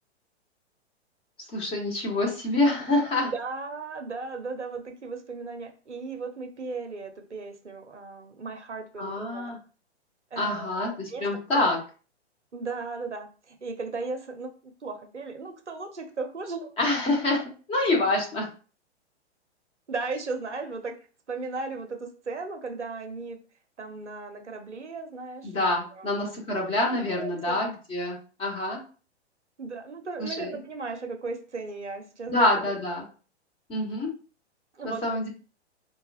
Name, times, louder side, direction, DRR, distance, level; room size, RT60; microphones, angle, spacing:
voice 1, 1.5-3.3 9.0-9.6 10.4-11.8 16.8-18.5 25.4-28.8 30.2-30.5 32.3-33.1 33.7-34.1 34.8-35.3, left 2 dB, 15° left, 0 dB, 1.0 m, -26 dB
voice 2, 3.2-9.6 10.3-11.3 11.6-11.7 12.5-16.7 19.9-21.0 21.3-23.4 23.8-26.2 27.1-27.6 29.6-32.5 34.7-35.0, right 4 dB, 85° right, 6 dB, 0.7 m, -36 dB
4.8 x 2.3 x 2.4 m, 0.37 s
figure-of-eight pair, 110°, 34 cm